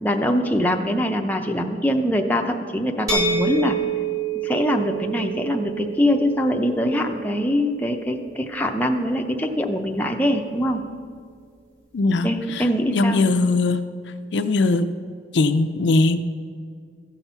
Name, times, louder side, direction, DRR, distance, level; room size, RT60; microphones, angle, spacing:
voice 1, 0.0-3.8 4.4-10.8 12.2-13.2, equal, 10° left, 2 dB, 0.6 m, -23 dB
sound 1, 3.1-8.9, right 4 dB, 20° right, 1.4 m, -29 dB
voice 2, 11.9-12.3 12.6-12.7 12.9-13.8 14.3-14.8 15.3-16.2, left 3 dB, 75° left, 9 dB, 0.5 m, -19 dB
14.5 x 5.9 x 5.5 m, 2.1 s
head